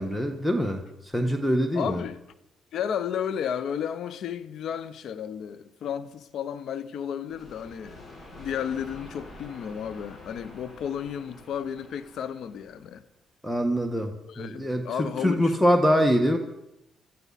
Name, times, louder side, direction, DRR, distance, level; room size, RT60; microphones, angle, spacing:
voice 1, 0.0-2.0 13.4-14.8 15.2-16.4, equal, 5° left, 1.5 m, -24 dB
voice 2, 1.7-2.2 2.7-8.0 8.3-13.0 14.3-15.5 16.2-16.3, left 8 dB, 70° left, 0.9 m, -33 dB
sound 1, 7.3-13.0, left 1 dB, 45° left, 7.8 m, -47 dB
24.5 x 13.5 x 4.2 m
cardioid pair, 90°, 0 cm